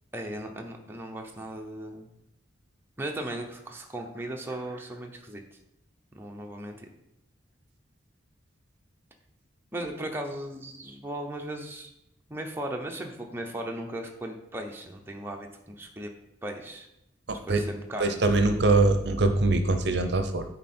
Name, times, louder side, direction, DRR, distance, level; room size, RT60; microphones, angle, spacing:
voice 1, 0.1-2.1 3.0-5.4 6.1-6.9 9.7-11.9 12.3-16.1 16.4-16.9 17.5-18.2, right 1 dB, 10° right, 2 dB, 0.7 m, -37 dB
voice 2, 17.3-17.6 18.0-20.5, right 2 dB, 55° right, 8 dB, 0.6 m, -23 dB
9.9 x 4.1 x 4.3 m, 0.84 s
head